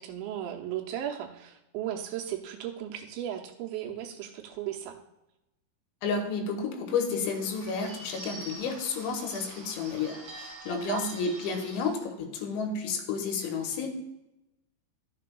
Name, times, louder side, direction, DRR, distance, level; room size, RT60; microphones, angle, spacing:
voice 1, 0.0-5.0 10.7-11.1, right 11 dB, 85° right, 1 dB, 3.2 m, -36 dB
voice 2, 6.0-13.9, left 5 dB, 90° left, 3 dB, 3.5 m, -31 dB
Bird / Bell, 7.1-12.0, right 2 dB, 60° right, 1.4 m, -46 dB
12.5 x 6.8 x 2.3 m, 0.92 s
omnidirectional pair, 5.2 m